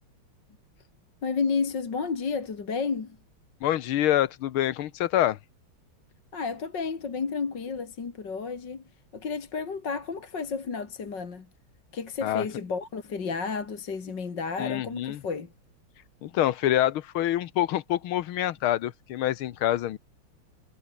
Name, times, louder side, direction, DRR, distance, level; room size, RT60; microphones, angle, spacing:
voice 1, 1.2-3.2 6.3-8.8 9.1-11.5 11.9-15.5, left 5 dB, 55° left, 3.1 m, -31 dB
voice 2, 3.6-5.4 12.2-12.4 14.6-15.2 16.2-20.0, left 13 dB, 80° left, 1.8 m, -26 dB
omnidirectional pair, 2.3 m